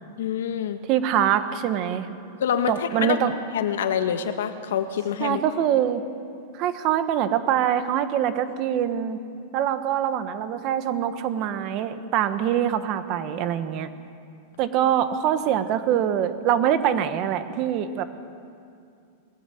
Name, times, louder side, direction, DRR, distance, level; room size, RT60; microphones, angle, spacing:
voice 1, 0.2-0.8 2.4-3.2 3.5-5.4, left 8 dB, 85° left, 8 dB, 1.6 m, -26 dB
voice 2, 0.9-2.1 2.7-3.3 5.2-6.0 6.5-9.2 9.5-13.9 14.6-18.0, right 10 dB, 30° right, 10 dB, 1.1 m, -24 dB
20.5 x 14.0 x 9.1 m, 2.4 s
supercardioid pair, 170°, 0 cm